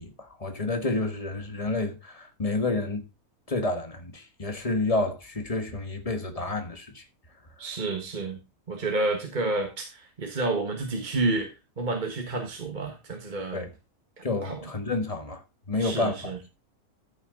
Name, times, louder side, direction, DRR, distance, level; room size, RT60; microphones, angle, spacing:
voice 1, 0.0-3.0 3.5-7.0 13.5-13.7 14.2-15.4 15.7-16.3, left 2 dB, 25° left, 1.6 m, -29 dB
voice 2, 7.6-8.4 8.7-11.5 11.8-13.7 14.2-14.7 15.8-16.4, right 2 dB, 30° right, 1.8 m, -30 dB
14.0 x 6.3 x 3.9 m
omnidirectional pair, 1.6 m